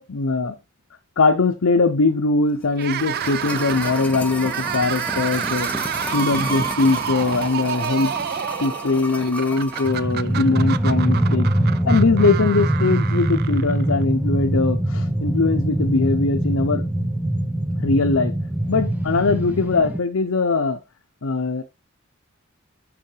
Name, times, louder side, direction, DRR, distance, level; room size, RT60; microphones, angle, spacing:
voice 1, 0.1-0.6 1.2-5.7 6.1-8.2 8.6-11.5 11.9-16.8 17.8-18.3 18.7-20.8 21.2-21.6, left 3 dB, 75° left, 5 dB, 0.7 m, -21 dB
sound 1, 2.6-10.0 10.3-10.4, equal, 5° left, 1.0 m, -32 dB
sound 2, 2.7-14.0, right 9 dB, 50° right, 0.4 m, -29 dB
sound 3, 9.8-20.0, right 1 dB, 10° right, 0.7 m, -22 dB
7.0 x 6.3 x 3.2 m, 0.25 s
head